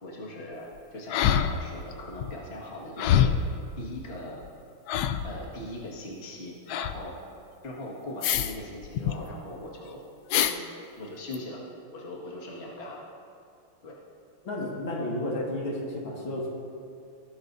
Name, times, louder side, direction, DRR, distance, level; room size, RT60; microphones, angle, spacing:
voice 1, 0.0-3.3 3.8-4.4 5.2-7.1 7.6-10.0 10.4-10.6 11.0-11.6 11.9-13.0 13.8-13.9, left 1 dB, 30° left, -4 dB, 1.9 m, -40 dB
sound 1, 1.1-1.9 2.2-2.3 3.0-3.5 4.4-4.5 4.9-5.4 6.7-7.0 8.2-8.6 8.8-9.1 10.3-10.6 11.3-11.4, left 9 dB, 90° left, 0.8 m, -25 dB
voice 2, 14.4-16.5, left 1 dB, 70° left, -3 dB, 2.7 m, -32 dB
19.0 x 12.0 x 2.7 m, 2.4 s
omnidirectional pair, 2.3 m